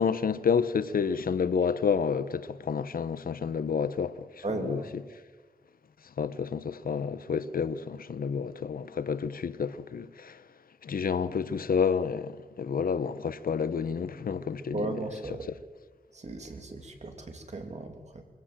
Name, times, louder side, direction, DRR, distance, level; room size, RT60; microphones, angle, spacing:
voice 1, 0.0-5.0 6.0-10.4 10.8-14.8 15.5-15.6, left 6 dB, 80° left, 0.9 m, -29 dB
voice 2, 4.4-4.8 14.7-15.5 16.1-18.2, right 2 dB, 50° right, 2.9 m, -36 dB
23.0 x 17.0 x 7.5 m
wide cardioid pair, 100°, 15 cm